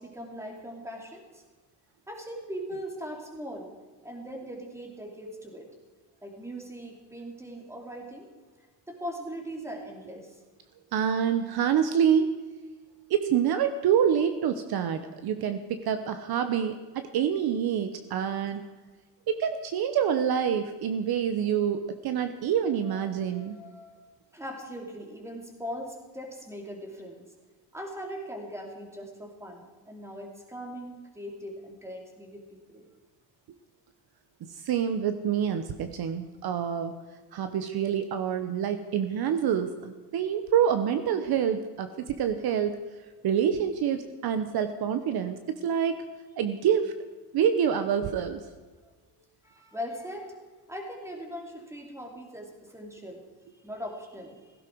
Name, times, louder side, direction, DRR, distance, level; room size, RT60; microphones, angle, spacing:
voice 1, 0.0-1.4 2.1-3.7 4.0-5.7 6.2-8.3 8.9-10.4 22.6-24.0 24.3-27.3 27.7-32.9 48.8-50.4 50.7-53.2 53.6-54.4, equal, 5° right, 1 dB, 2.8 m, -40 dB
voice 2, 10.9-12.3 13.1-18.6 19.3-23.6 34.4-37.0 37.3-42.8 43.2-46.0 46.4-46.9 47.3-48.4, right 8 dB, 55° right, 9 dB, 1.0 m, -27 dB
16.5 x 16.0 x 4.6 m, 1.3 s
cardioid pair, 160°, 44 cm